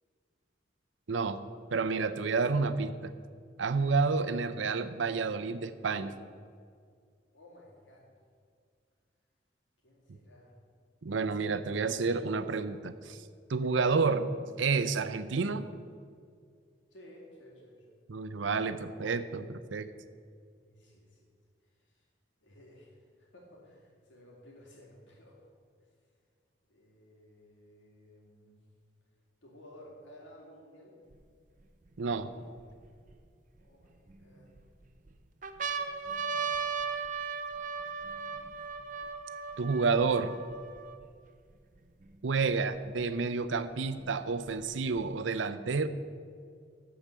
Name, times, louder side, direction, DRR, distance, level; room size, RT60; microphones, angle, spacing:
voice 1, 1.1-1.4 1.7-3.1 3.6-6.1 11.0-13.2 13.5-14.3 14.6-15.7 18.1-19.9 32.0-32.3 39.6-40.3 42.2-45.9, right 4 dB, 90° right, 12 dB, 0.6 m, -30 dB
voice 2, 7.3-8.0 9.8-10.6 16.9-18.0 20.6-21.2 21.7-22.1 22.4-25.4 26.7-28.6 29.4-31.0 33.6-34.5, left 1 dB, 85° left, -3 dB, 2.9 m, -55 dB
sound 1, 31.1-31.2 31.9-33.1 33.8-34.6 35.1-35.2 35.4-41.1 41.8-41.9 42.0-43.0 44.0-45.0, right 5 dB, 45° right, 0.6 m, -37 dB
13.5 x 5.0 x 6.8 m, 2.1 s
head